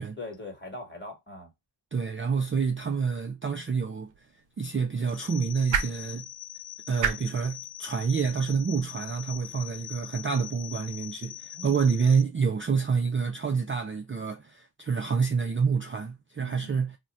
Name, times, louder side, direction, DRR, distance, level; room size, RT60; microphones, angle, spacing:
voice 1, 0.0-1.5 11.5-11.8 16.4-16.7, left 1 dB, 25° left, 1.3 m, -41 dB
voice 2, 1.9-4.1 4.6-6.3 6.9-17.0, right 5 dB, 30° right, 0.3 m, -28 dB
sound 1, 3.9-10.1, right 6 dB, 80° right, 0.5 m, -37 dB
sound 2, 5.1-12.2, left 13 dB, 75° left, 0.7 m, -42 dB
2.4 x 2.1 x 3.9 m
wide cardioid pair, 65°, 44 cm